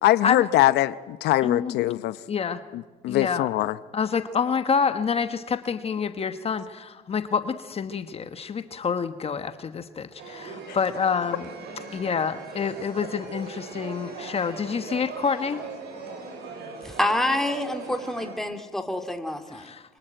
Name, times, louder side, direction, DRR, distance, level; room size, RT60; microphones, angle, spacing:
voice 1, 0.0-2.2 2.7-3.8 10.7-10.8, left 15 dB, 80° left, 0.8 m, -22 dB
voice 2, 1.4-1.7 2.3-2.6 3.1-3.4 3.9-11.5 11.9-15.6 19.5-19.8, left 6 dB, 35° left, 1.3 m, -27 dB
sound 1, 10.2-18.3, right 4 dB, 80° right, 7.1 m, -39 dB
voice 3, 16.8-19.7, left 1 dB, ahead, 2.3 m, -27 dB
26.5 x 24.5 x 9.0 m
cardioid pair, 110°, 17 cm